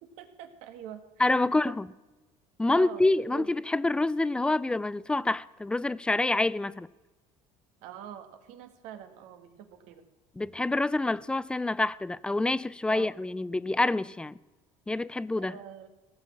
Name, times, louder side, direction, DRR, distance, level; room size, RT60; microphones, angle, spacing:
voice 1, 0.0-1.0 1.4-1.8 2.7-3.5 7.8-10.0 12.9-13.1 15.4-15.9, right 9 dB, 75° right, 1.6 m, -45 dB
voice 2, 1.2-1.9 2.6-6.9 10.4-14.4 14.9-15.5, left 2 dB, 10° left, 0.3 m, -27 dB
16.5 x 6.6 x 7.3 m
cardioid pair, 125°, 12 cm